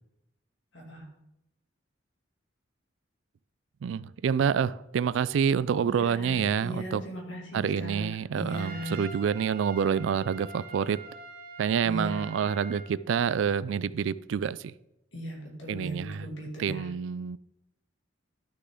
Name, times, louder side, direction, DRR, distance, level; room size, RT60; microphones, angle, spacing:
voice 1, 0.7-1.1 5.8-9.0 11.8-12.3 15.1-16.9, equal, 65° left, 0 dB, 2.5 m, -38 dB
voice 2, 3.8-7.0 7.5-11.0 11.6-14.7 15.7-16.2 16.6-17.4, right 7 dB, 70° right, 19 dB, 0.3 m, -27 dB
Trumpet, 8.5-12.9, right 3 dB, 50° right, 1.0 m, -45 dB
11.5 x 6.7 x 3.7 m, 0.87 s
head